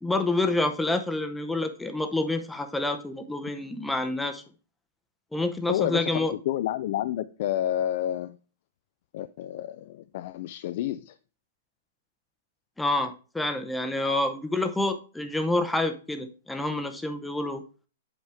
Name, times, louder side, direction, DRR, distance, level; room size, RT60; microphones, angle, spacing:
voice 1, 0.0-4.4 5.3-6.3 12.8-17.6, left 2 dB, 5° left, 0.7 m, -28 dB
voice 2, 5.7-8.4 9.1-11.2, left 12 dB, 50° left, 0.3 m, -29 dB
8.1 x 4.9 x 3.4 m
hypercardioid pair, 160°, 0 cm